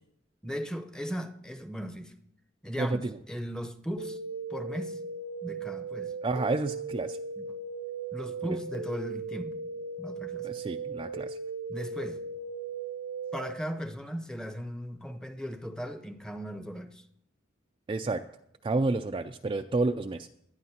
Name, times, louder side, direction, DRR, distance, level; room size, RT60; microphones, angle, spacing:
voice 1, 0.4-2.1 2.6-4.2 4.5-5.0 5.4-6.1 7.4-7.5 8.1-9.7 10.0-10.5 11.7-12.2 13.3-17.1, equal, 5° left, 6 dB, 0.8 m, -37 dB
voice 2, 2.8-3.2 6.2-7.2 10.4-11.4 17.9-18.2 18.6-20.3, right 3 dB, 25° right, 6 dB, 0.3 m, -30 dB
sound 1, 4.0-13.5, right 4 dB, 75° right, 0.5 m, -37 dB
18.5 x 11.5 x 2.9 m, 0.77 s
head